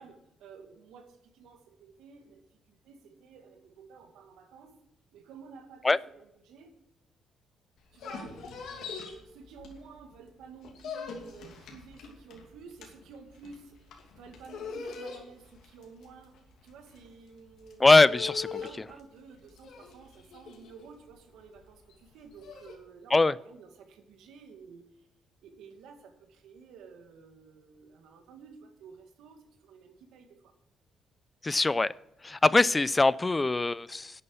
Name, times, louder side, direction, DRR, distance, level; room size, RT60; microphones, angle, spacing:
voice 1, 0.0-4.7 5.1-6.7 7.9-17.8 18.6-25.1 25.4-30.5, right 5 dB, 85° right, 6 dB, 1.9 m, -52 dB
sound 1, 7.8-10.1 10.4-22.7, left 5 dB, 75° left, 2.7 m, -43 dB
voice 2, 17.8-18.5 23.1-23.3 31.4-31.9 32.2-34.1, left 3 dB, 20° left, 20 dB, 0.4 m, -22 dB
11.0 x 8.4 x 6.9 m, 0.81 s
cardioid pair, 90°, 0 cm